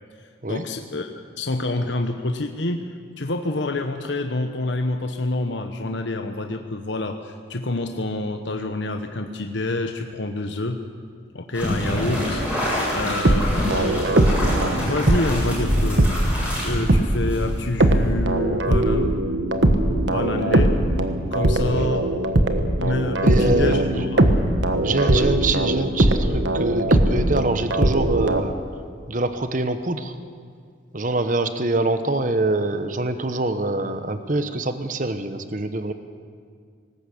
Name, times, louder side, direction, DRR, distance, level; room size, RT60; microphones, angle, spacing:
voice 1, 0.5-2.8 3.2-10.8 11.3-12.4 12.9-14.1 14.6-16.1 16.6-19.1 20.0-20.7 21.3-22.1 22.8-24.2 25.1-25.3, left 2 dB, 70° left, 5 dB, 1.1 m, -27 dB
sound 1, 11.5-17.8, equal, 5° right, 7.8 m, -26 dB
sound 2, 13.0-16.4 16.9-17.1 17.8-28.4, right 1 dB, 70° right, 1.4 m, -20 dB
voice 2, 23.2-24.0 24.8-28.5 29.1-30.2 30.9-35.9, right 2 dB, 40° right, 9 dB, 1.0 m, -25 dB
19.0 x 18.5 x 8.5 m, 2.1 s
head